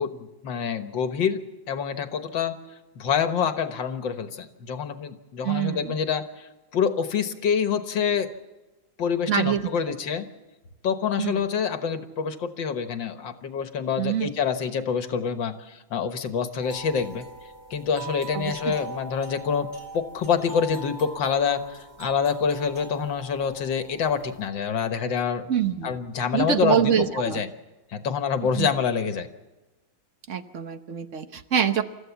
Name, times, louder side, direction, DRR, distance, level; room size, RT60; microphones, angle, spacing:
voice 1, 0.0-2.5 3.0-8.3 9.0-10.3 10.8-17.3 17.7-19.7 19.9-25.5 25.8-27.5 27.9-29.3, left 6 dB, 70° left, 8 dB, 2.0 m, -26 dB
voice 2, 5.4-6.0 9.3-9.9 11.2-11.4 14.0-14.3 18.3-18.7 25.5-25.9 26.3-27.4 28.4-28.7 30.3-31.8, right 9 dB, 45° right, 9 dB, 1.1 m, -25 dB
sound 1, 16.6-24.5, right 2 dB, 10° right, 2.7 m, -42 dB
29.0 x 14.5 x 7.2 m, 1.1 s
omnidirectional pair, 2.2 m